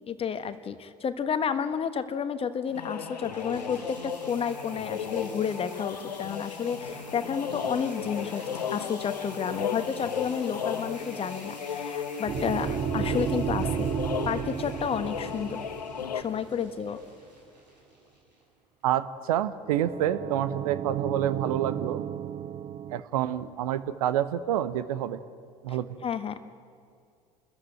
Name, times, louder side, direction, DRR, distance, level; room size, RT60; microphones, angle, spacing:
voice 1, 0.1-13.9 14.2-15.6 16.1-17.0 25.7-26.4, left 7 dB, 25° left, 11 dB, 1.4 m, -31 dB
sound 1, 2.6-18.6, right 1 dB, 90° right, 6.2 m, -49 dB
sound 2, 2.7-16.2, left 7 dB, 75° left, 1.3 m, -35 dB
sound 3, 12.3-16.7 19.7-23.0, right 9 dB, 30° right, 0.8 m, -33 dB
voice 2, 18.8-22.0 22.9-25.2 25.6-25.9, right 11 dB, 60° right, 14 dB, 1.0 m, -28 dB
29.5 x 14.0 x 9.1 m, 2.3 s
figure-of-eight pair, 70°, 21 cm